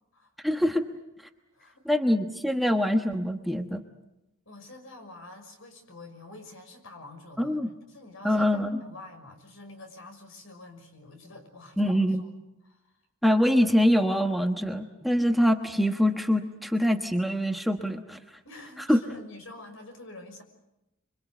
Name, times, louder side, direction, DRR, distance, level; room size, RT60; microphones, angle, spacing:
voice 1, 0.4-0.8 1.8-3.8 7.4-7.7 8.2-8.8 11.8-12.2 13.2-18.2 18.9-19.0, equal, ahead, 4 dB, 1.2 m, -24 dB
voice 2, 1.5-1.9 4.5-7.6 7.9-12.3 12.6-12.9 18.4-20.4, left 2 dB, 70° left, 6 dB, 6.1 m, -47 dB
26.0 x 24.5 x 8.1 m, 0.92 s
head